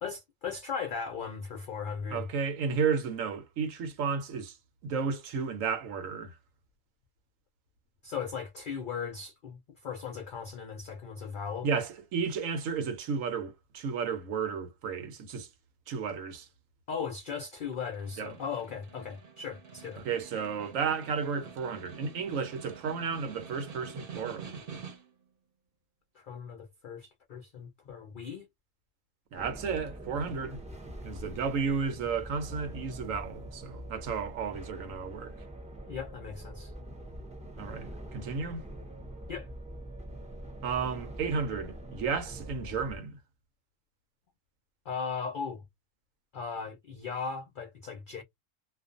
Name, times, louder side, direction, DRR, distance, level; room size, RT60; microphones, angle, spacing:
voice 1, 0.0-2.3 8.0-11.7 16.9-20.0 26.2-28.5 35.9-36.7 39.3-39.5 44.9-45.6 46.3-48.2, left 6 dB, 55° left, 0.6 m, -37 dB
voice 2, 2.1-4.6 4.8-6.3 11.6-15.5 15.9-16.5 18.2-18.4 20.0-24.6 29.3-30.6 31.0-35.3 37.6-38.6 40.6-43.2, right 5 dB, 80° right, 1.1 m, -33 dB
Snare drum, 17.8-25.3, right 6 dB, 50° right, 0.9 m, -47 dB
sound 1, 29.4-43.0, right 1 dB, 10° right, 0.4 m, -44 dB
2.4 x 2.3 x 2.4 m
omnidirectional pair, 1.4 m